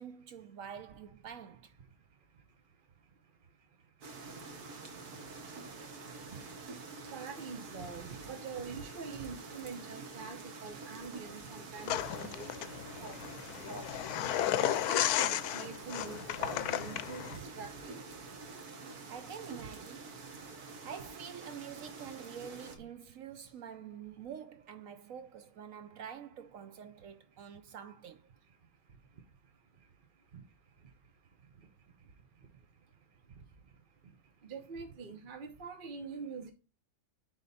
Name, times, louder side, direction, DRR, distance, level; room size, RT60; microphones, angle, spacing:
voice 1, 0.0-1.7 19.1-20.2 20.8-28.2, right 8 dB, 65° right, 1.0 m, -47 dB
voice 2, 1.8-19.1 19.5-19.7 20.0-20.9 21.7-21.8 22.2-22.9 24.9-25.0 25.8-26.0 26.9-27.8 28.4-36.5, right 5 dB, 40° right, 0.9 m, -48 dB
sound 1, 4.0-22.8, right 3 dB, 85° right, 1.9 m, -47 dB
sound 2, 11.9-17.4, left 12 dB, 85° left, 1.1 m, -33 dB
10.5 x 3.7 x 4.0 m
omnidirectional pair, 1.6 m